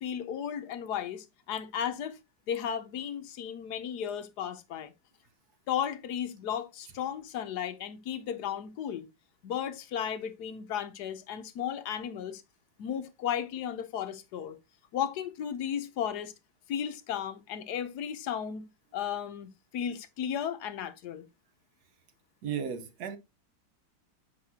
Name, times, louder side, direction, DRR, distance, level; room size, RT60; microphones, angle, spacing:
voice 1, 0.0-2.2 2.5-4.9 5.7-9.1 9.4-12.4 12.8-14.6 14.9-16.3 16.7-18.7 18.9-21.2, left 9 dB, 65° left, 1.1 m, -34 dB
voice 2, 22.4-23.2, right 7 dB, 60° right, 1.2 m, -34 dB
7.6 x 5.6 x 2.7 m
omnidirectional pair, 2.2 m